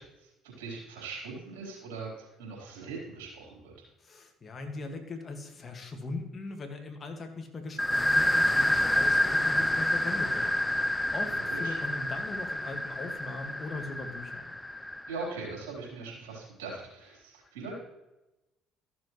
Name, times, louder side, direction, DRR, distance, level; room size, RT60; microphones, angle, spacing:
voice 1, 0.6-3.7 11.3-11.8 15.1-17.7, right 4 dB, 85° right, -4 dB, 4.1 m, -41 dB
voice 2, 4.0-14.5, left 3 dB, 40° left, 4 dB, 2.0 m, -40 dB
sound 1, 7.8-15.3, left 1 dB, 10° left, 0.7 m, -28 dB
14.0 x 7.4 x 3.2 m, 0.97 s
hypercardioid pair, 65°, 0 cm